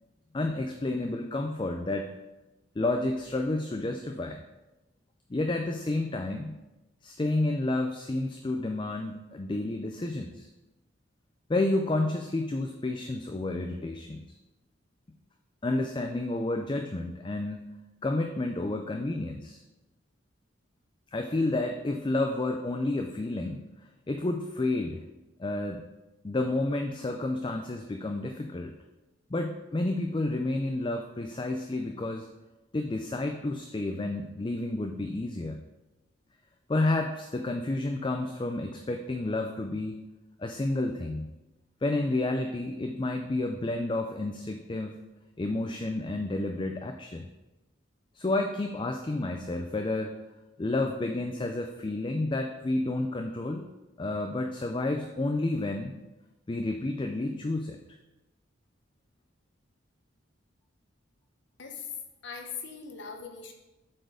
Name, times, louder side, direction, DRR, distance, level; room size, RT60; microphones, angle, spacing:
voice 1, 0.3-2.1 2.8-4.4 5.3-6.5 7.0-10.5 11.5-14.2 15.6-17.7 18.0-19.6 21.1-23.6 24.1-25.0 25.4-25.8 26.2-28.7 29.3-32.3 32.7-35.6 36.7-40.0 40.4-41.3 41.8-45.0 45.4-47.3 48.1-50.1 50.6-53.6 54.0-56.0 56.5-57.8, left 2 dB, 25° left, 4 dB, 0.4 m, -30 dB
voice 2, 61.6-62.0 62.2-63.5, left 6 dB, 65° left, 4 dB, 1.0 m, -40 dB
7.7 x 4.4 x 5.0 m, 1.0 s
head